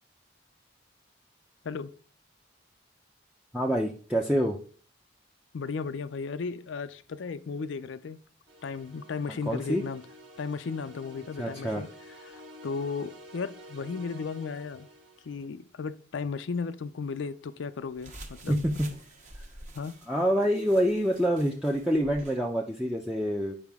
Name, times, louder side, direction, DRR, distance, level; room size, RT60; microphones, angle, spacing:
voice 1, 3.5-4.6 9.3-9.8 11.4-11.8 18.5-18.9 20.1-23.5, equal, 5° right, 0.5 m, -26 dB
voice 2, 5.5-8.2 8.6-10.1 10.4-11.9 12.2-14.9 15.2-18.6 19.7-20.0, left 5 dB, 75° left, 0.4 m, -35 dB
sound 1, 8.5-15.5, equal, 70° right, 1.1 m, -50 dB
sound 2, 18.0-22.4, right 1 dB, 40° right, 1.2 m, -48 dB
8.8 x 4.9 x 3.5 m
head